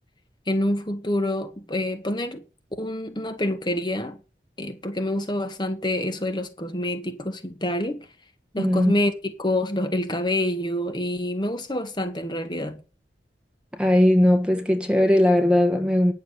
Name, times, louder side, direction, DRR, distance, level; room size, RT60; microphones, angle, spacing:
voice 1, 0.5-2.4 2.8-4.2 4.6-8.1 8.5-12.8, left 1 dB, 25° left, 1.4 m, -27 dB
voice 2, 8.6-8.9 13.7-16.1, left 1 dB, 5° right, 1.5 m, -19 dB
10.0 x 7.1 x 6.5 m
head